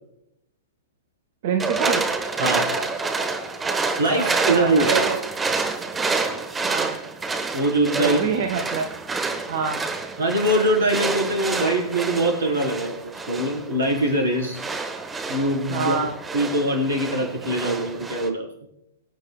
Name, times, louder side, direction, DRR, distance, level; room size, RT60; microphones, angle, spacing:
voice 1, 1.4-2.0 4.1-5.2 6.6-7.0 8.0-8.9 9.5-9.8 15.7-16.2, right 6 dB, 45° right, 5 dB, 1.1 m, -26 dB
sound 1, 1.6-18.3, right 4 dB, 10° right, 1.1 m, -28 dB
voice 2, 4.0-4.9 7.5-8.2 10.2-14.6 15.3-16.0 16.3-18.5, right 1 dB, 60° right, 0 dB, 4.6 m, -22 dB
24.0 x 8.7 x 2.4 m, 0.84 s
figure-of-eight pair, 110°, 0 cm